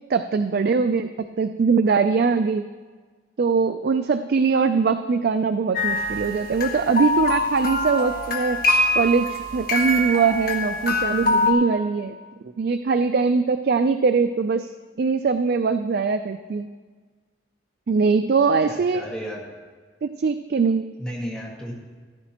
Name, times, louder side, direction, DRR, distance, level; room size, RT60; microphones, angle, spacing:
voice 1, 0.1-2.7 3.4-8.6 8.9-12.2 12.6-14.7 15.0-16.7 17.9-19.0 20.0-20.9, right 5 dB, 50° right, 10 dB, 0.3 m, -22 dB
sound 1, 5.7-11.5, left 2 dB, 50° left, 1.4 m, -24 dB
voice 2, 18.7-19.4 21.0-21.7, equal, 5° left, -4 dB, 1.6 m, -33 dB
14.0 x 12.5 x 2.9 m, 1.5 s
head